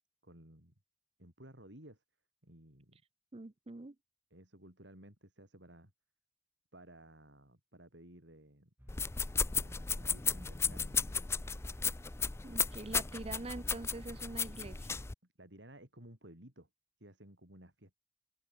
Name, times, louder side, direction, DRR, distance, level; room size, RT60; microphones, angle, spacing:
voice 1, 0.2-0.7 1.2-2.0 2.4-3.0 4.3-5.9 6.7-8.7 9.5-11.3 15.4-16.7 17.0-18.0, right 1 dB, 75° right, 7.0 m, -56 dB
voice 2, 3.3-4.0 12.4-14.9, right 2 dB, 35° right, 0.6 m, -44 dB
sound 1, 8.8-15.1, equal, 10° right, 2.1 m, -55 dB
sound 2, 8.9-15.1, left 5 dB, 15° left, 0.4 m, -35 dB
open air
head